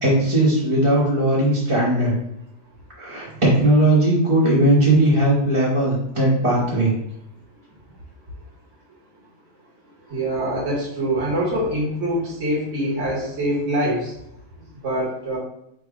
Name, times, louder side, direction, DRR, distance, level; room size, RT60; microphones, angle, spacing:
voice 1, 0.0-2.1 3.0-6.9, right 1 dB, 25° right, -8 dB, 1.0 m, -18 dB
voice 2, 10.1-14.1 14.8-15.4, right 1 dB, 65° right, -5 dB, 1.5 m, -24 dB
3.3 x 2.9 x 4.7 m, 0.76 s
omnidirectional pair, 1.3 m